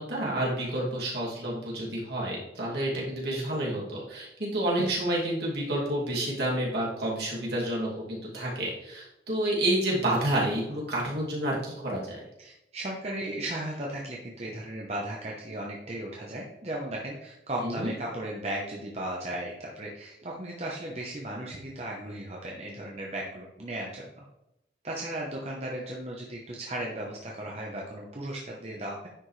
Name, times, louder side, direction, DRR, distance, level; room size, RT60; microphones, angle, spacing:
voice 1, 0.0-12.2 17.6-17.9, right 1 dB, 65° right, -5 dB, 2.6 m, -29 dB
voice 2, 12.4-24.2 24.8-29.1, right 1 dB, 35° right, -2 dB, 0.9 m, -36 dB
9.8 x 5.2 x 3.2 m, 0.86 s
head